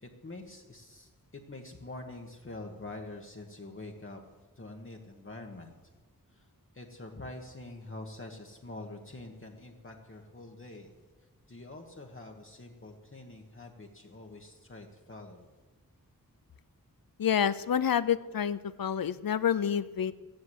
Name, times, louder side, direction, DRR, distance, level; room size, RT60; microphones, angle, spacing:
voice 1, 0.0-4.2 4.6-5.7 6.3-6.4 6.7-10.9 11.5-15.5, left 2 dB, 35° left, 1 dB, 1.4 m, -45 dB
voice 2, 17.2-20.1, left 8 dB, 70° left, 15 dB, 0.6 m, -28 dB
14.5 x 10.5 x 8.1 m, 1.3 s
wide cardioid pair, 80°, 36 cm